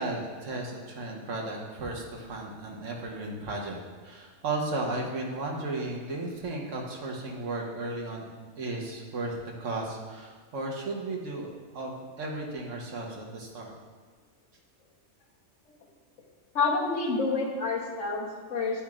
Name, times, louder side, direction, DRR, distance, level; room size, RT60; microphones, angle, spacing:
voice 1, 0.0-3.8 4.0-13.7, right 2 dB, 85° right, -1 dB, 1.3 m, -35 dB
voice 2, 16.5-18.8, left 3 dB, 80° left, -2 dB, 1.4 m, -28 dB
10.5 x 4.3 x 2.4 m, 1.5 s
omnidirectional pair, 1.3 m